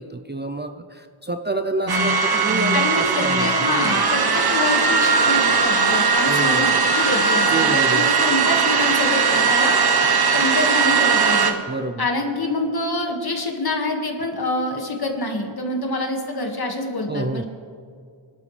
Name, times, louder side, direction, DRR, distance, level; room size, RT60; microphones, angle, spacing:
voice 1, 0.0-4.1 6.3-6.8 7.5-8.1 11.7-12.1 17.1-17.4, right 2 dB, 20° right, 7 dB, 0.5 m, -28 dB
sound 1, 1.9-11.5, right 5 dB, 50° right, 1.3 m, -19 dB
voice 2, 2.7-9.8 10.3-11.5 12.0-17.4, left 2 dB, 50° left, 2 dB, 2.0 m, -26 dB
26.0 x 12.0 x 3.4 m, 2.3 s
wide cardioid pair, 135°, 49 cm